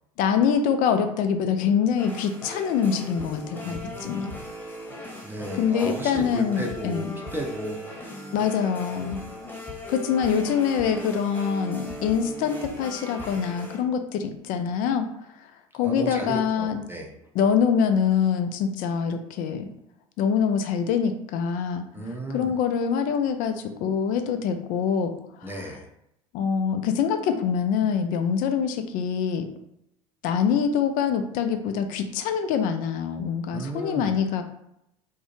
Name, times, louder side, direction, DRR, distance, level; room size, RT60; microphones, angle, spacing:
voice 1, 0.2-4.4 5.5-7.2 8.3-9.2 9.9-15.1 15.7-16.8 17.3-19.7 20.2-21.8 22.3-25.1 25.4-25.7 26.3-29.5 30.2-34.4, left 7 dB, 55° left, 7 dB, 0.4 m, -25 dB
sound 1, 2.0-13.8, equal, 10° left, 1.2 m, -38 dB
voice 2, 3.6-4.2 5.2-8.2 8.9-9.1 15.8-17.1 21.9-22.5 25.4-25.9 33.5-34.1, right 1 dB, 15° right, 0 dB, 0.6 m, -35 dB
2.6 x 2.1 x 2.9 m, 0.79 s
hypercardioid pair, 70°, 17 cm